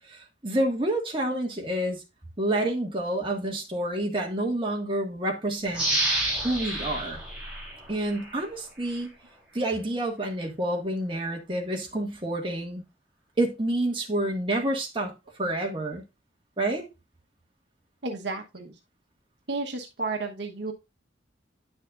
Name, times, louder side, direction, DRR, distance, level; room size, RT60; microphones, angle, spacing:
voice 1, 0.1-2.0 2.4-5.8 6.4-7.2 7.9-9.1 9.5-12.8 13.4-16.0 16.6-16.9, right 1 dB, 25° right, 1.7 m, -28 dB
sound 1, 5.7-8.4 8.9-9.0, right 1 dB, 5° right, 3.4 m, -29 dB
voice 2, 18.0-18.7 19.5-20.7, right 3 dB, 65° right, 1.1 m, -32 dB
9.8 x 6.3 x 2.5 m
head